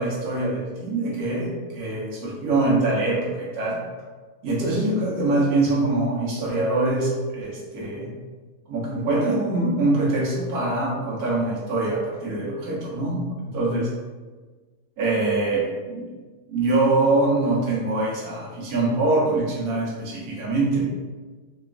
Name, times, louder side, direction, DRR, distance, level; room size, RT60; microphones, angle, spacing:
voice 1, 0.0-3.8 4.4-8.1 8.7-13.9 15.0-16.0 16.5-20.8, right 2 dB, 80° right, -5 dB, 1.3 m, -24 dB
2.9 x 2.3 x 2.3 m, 1.4 s
omnidirectional pair, 1.6 m